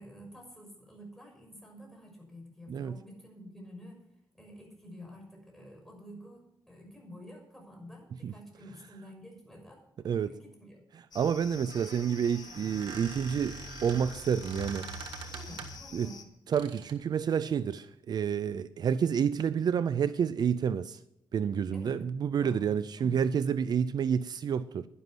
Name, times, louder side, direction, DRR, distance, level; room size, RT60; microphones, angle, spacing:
voice 1, 0.0-4.0 4.3-10.8 15.2-16.2 21.7-22.0 22.4-22.7 23.0-23.2, equal, 5° left, 6.2 m, -49 dB
sound 1, 11.1-16.2, left 6 dB, 60° left, 1.5 m, -48 dB
voice 2, 11.1-14.9 15.9-16.1 16.5-21.0 21.3-24.9, right 7 dB, 60° right, 0.5 m, -29 dB
Squeak, 11.5-15.9 16.5-17.0, right 4 dB, 85° right, 1.5 m, -44 dB
11.0 x 11.0 x 6.1 m
cardioid pair, 85°, 8 cm